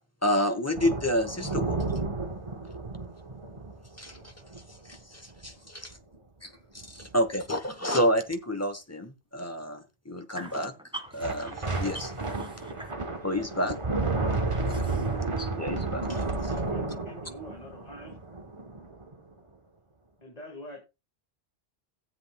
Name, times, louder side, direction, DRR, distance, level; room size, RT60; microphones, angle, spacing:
voice 1, 0.2-1.8 4.0-4.2 4.9-5.9 6.4-6.5 6.7-10.7 11.2-12.1 13.2-13.8 14.7-14.9 15.6-16.2, equal, 15° left, 1.0 m, -29 dB
sound 1, 0.7-5.0 5.3-5.5 5.9-6.1 6.8-7.2 11.2-19.2, right 3 dB, 30° right, 1.1 m, -32 dB
voice 2, 10.3-13.0 14.1-14.2 14.5-15.5, right 1 dB, 5° right, 1.9 m, -45 dB
voice 3, 16.0-18.2 20.2-20.8, equal, 40° left, 2.3 m, -45 dB
16.0 x 7.7 x 2.2 m
omnidirectional pair, 1.1 m